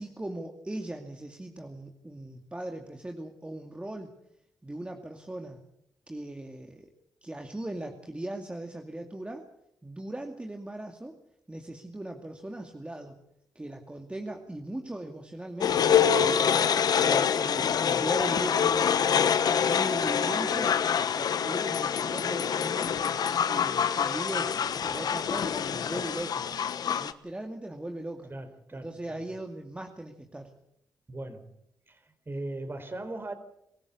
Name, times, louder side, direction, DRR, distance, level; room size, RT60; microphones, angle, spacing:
voice 1, 0.0-4.1 4.6-5.6 6.1-6.9 7.2-9.4 9.8-11.1 11.5-13.1 13.5-20.7 21.1-23.0 23.4-24.5 24.8-26.5 27.0-28.3 28.7-30.5, right 1 dB, 15° right, 3 dB, 2.3 m, -39 dB
sound 1, 15.6-27.1, left 7 dB, 70° left, 1.2 m, -26 dB
voice 2, 28.3-29.2 31.1-31.5 31.9-33.3, right 2 dB, 30° right, 9 dB, 4.3 m, -39 dB
24.0 x 15.0 x 8.4 m, 0.79 s
cardioid pair, 60°, 7 cm